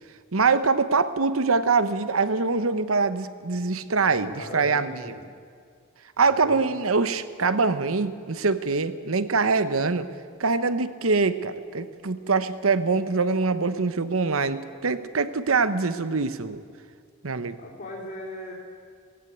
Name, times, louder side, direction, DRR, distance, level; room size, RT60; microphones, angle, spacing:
voice 1, 0.3-4.9 6.2-10.1 10.4-16.6 17.2-17.6, right 4 dB, 70° right, 13 dB, 1.0 m, -24 dB
voice 2, 4.1-5.3 6.2-6.8 17.6-18.5, left 1 dB, 45° left, -7 dB, 3.6 m, -39 dB
18.5 x 16.0 x 9.4 m, 2.1 s
head